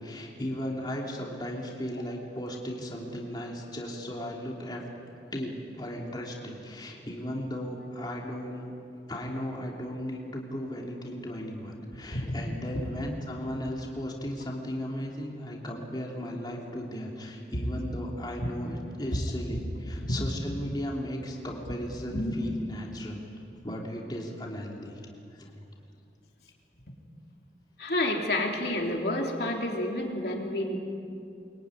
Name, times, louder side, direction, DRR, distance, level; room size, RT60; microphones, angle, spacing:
voice 1, 0.0-4.8 5.3-8.7 9.1-23.2 23.6-25.0 25.3-25.5, equal, 25° left, -2 dB, 3.1 m, -36 dB
voice 2, 27.8-30.8, left 1 dB, 60° left, 0 dB, 3.2 m, -29 dB
23.5 x 23.0 x 9.9 m, 2.6 s
head